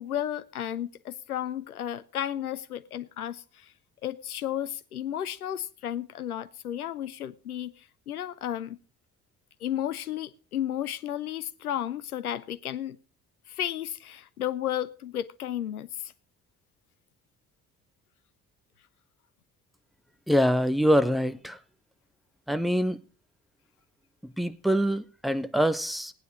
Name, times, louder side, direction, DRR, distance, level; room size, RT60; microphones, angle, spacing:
voice 1, 0.0-3.7 4.0-8.8 9.6-13.0 13.5-16.1, left 11 dB, 85° left, 0.6 m, -33 dB
voice 2, 20.3-21.6 22.5-23.0 24.2-26.1, equal, ahead, 0.8 m, -25 dB
16.5 x 9.3 x 5.0 m
figure-of-eight pair, 45°, 43 cm